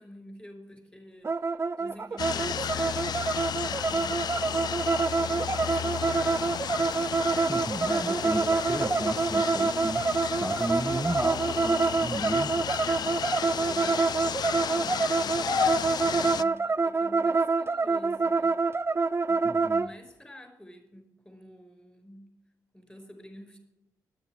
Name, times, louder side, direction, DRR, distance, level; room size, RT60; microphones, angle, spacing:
voice 1, 0.0-7.5 7.9-8.4 10.3-11.2 12.5-18.5 19.3-22.3 22.7-23.6, left 1 dB, 15° left, 4 dB, 5.2 m, -49 dB
sound 1, 1.2-19.9, right 4 dB, 30° right, 0.4 m, -27 dB
sound 2, 2.2-16.4, left 8 dB, 60° left, 0.4 m, -32 dB
voice 2, 7.5-12.5 19.4-19.9, right 1 dB, 5° right, 8 dB, 1.1 m, -34 dB
9.7 x 9.2 x 9.0 m, 0.89 s
supercardioid pair, 50°, 8 cm